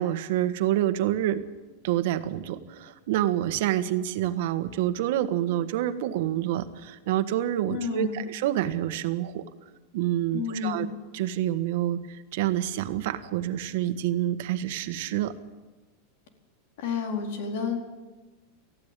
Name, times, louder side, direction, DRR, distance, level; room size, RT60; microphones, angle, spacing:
voice 1, 0.0-1.4 1.8-9.4 9.9-10.9 11.1-15.3, right 12 dB, 60° right, 10 dB, 1.5 m, -27 dB
voice 2, 7.7-8.3 10.3-10.9 16.8-17.9, left 6 dB, 65° left, 3 dB, 4.3 m, -30 dB
19.5 x 14.5 x 9.1 m, 1.2 s
supercardioid pair, 160°, 0 cm